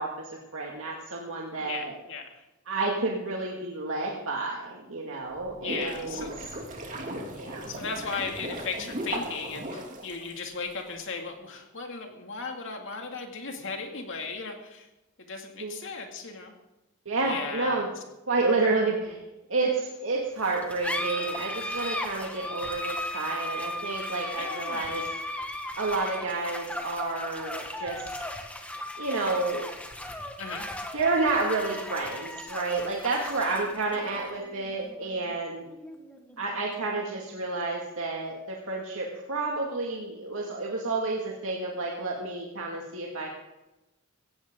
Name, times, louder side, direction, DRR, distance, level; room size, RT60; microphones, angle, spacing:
voice 1, 0.0-1.9 2.7-6.3 7.4-7.7 15.6-15.7 17.1-17.9 18.3-19.2 19.5-25.0 25.8-28.2 29.0-29.7 30.5-30.6 30.9-35.7 36.4-43.3, right 3 dB, 70° right, -2 dB, 2.2 m, -30 dB
voice 2, 1.6-2.4 5.6-6.3 7.3-14.9 15.2-16.5 17.2-17.9 19.0-19.2 24.4-25.0 30.4-30.7, left 4 dB, 60° left, 3 dB, 2.5 m, -36 dB
sound 1, 5.3-10.7, right 1 dB, 40° right, 2.7 m, -37 dB
sound 2, 20.4-37.4, left 1 dB, 5° left, 1.5 m, -37 dB
17.5 x 15.5 x 3.9 m, 0.98 s
head